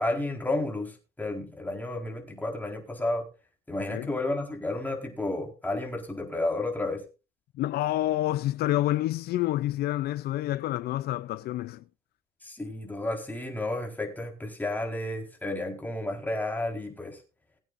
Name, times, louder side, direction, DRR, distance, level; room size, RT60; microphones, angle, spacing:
voice 1, 0.0-3.2 3.7-7.0 12.4-17.2, left 2 dB, 10° left, 4.3 m, -32 dB
voice 2, 7.6-11.8, left 14 dB, 70° left, 0.5 m, -28 dB
21.0 x 8.9 x 2.6 m
cardioid pair, 110°, 17 cm